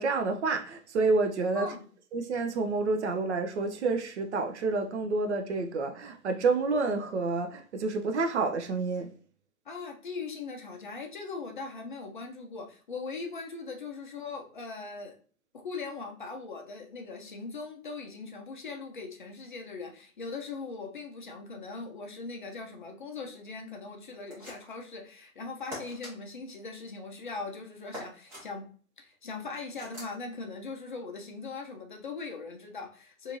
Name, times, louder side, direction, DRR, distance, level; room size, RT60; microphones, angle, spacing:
voice 1, 0.0-1.8 2.1-9.1, right 3 dB, 55° right, 0.5 m, -29 dB
voice 2, 1.5-1.9 9.7-15.2 15.5-28.7 29.0-33.4, left 4 dB, 40° left, 0.4 m, -40 dB
sound 1, 24.3-24.9 25.7-26.1 27.9-28.5 29.8-30.2, equal, 5° right, 0.6 m, -42 dB
2.6 x 2.5 x 2.8 m
figure-of-eight pair, 125°, 43 cm